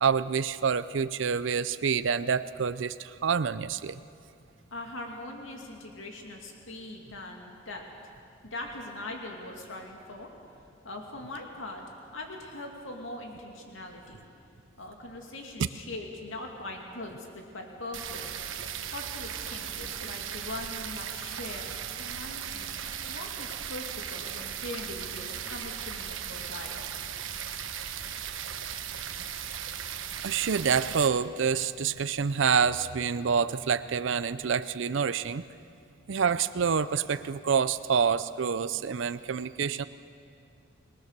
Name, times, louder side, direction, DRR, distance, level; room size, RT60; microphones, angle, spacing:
voice 1, 0.0-4.0 15.6-15.7 30.2-35.4 36.1-39.8, right 6 dB, 75° right, 13 dB, 0.5 m, -27 dB
voice 2, 4.7-8.1 8.4-10.3 10.8-11.8 12.1-14.2 14.8-18.3 18.9-26.9, left 2 dB, 90° left, 2 dB, 2.5 m, -41 dB
sound 1, 17.9-31.1, right 8 dB, 90° right, 1.2 m, -37 dB
27.0 x 19.0 x 6.7 m, 2.5 s
head